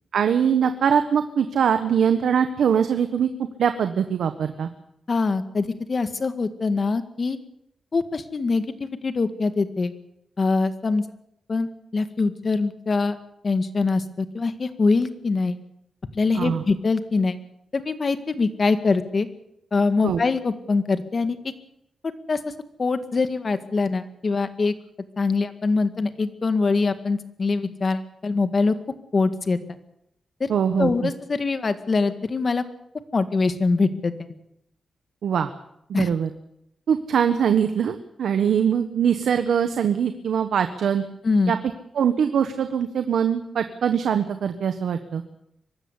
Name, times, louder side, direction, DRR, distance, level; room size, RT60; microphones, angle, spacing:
voice 1, 0.1-4.7 16.3-16.6 20.0-20.2 30.5-31.1 35.2-35.5 35.9-36.3 36.9-41.0 41.5-41.6 41.9-45.2, right 7 dB, 85° right, 8 dB, 1.3 m, -22 dB
voice 2, 5.1-7.4 7.9-9.9 10.4-11.0 11.5-13.2 13.4-15.6 16.1-17.4 17.7-19.3 19.7-21.4 22.0-22.4 22.8-24.7 25.2-28.8 29.1-29.6 30.4-30.5 30.8-32.6 33.1-34.3 35.9-36.1 41.2-41.5, left 4 dB, 40° left, 10 dB, 1.9 m, -23 dB
23.5 x 13.5 x 9.9 m, 0.80 s
wide cardioid pair, 110°, 0 cm